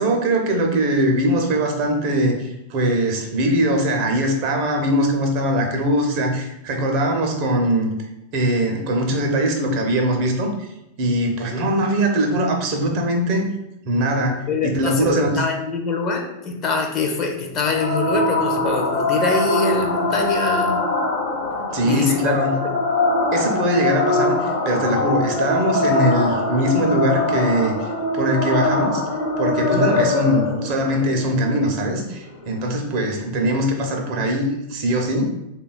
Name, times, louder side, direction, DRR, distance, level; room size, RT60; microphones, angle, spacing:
voice 1, 0.0-8.0 8.3-10.7 11.0-13.5 13.8-15.4 21.7-22.5 23.3-29.0 29.4-35.3, right 1 dB, 45° right, 2 dB, 0.5 m, -21 dB
voice 2, 14.5-20.8 21.8-22.7 29.6-29.9, left 4 dB, 35° left, 2 dB, 0.4 m, -24 dB
sound 1, 17.6-32.6, left 2 dB, 60° left, 0.8 m, -23 dB
3.2 x 2.2 x 2.2 m, 0.89 s
figure-of-eight pair, 90°, 0 cm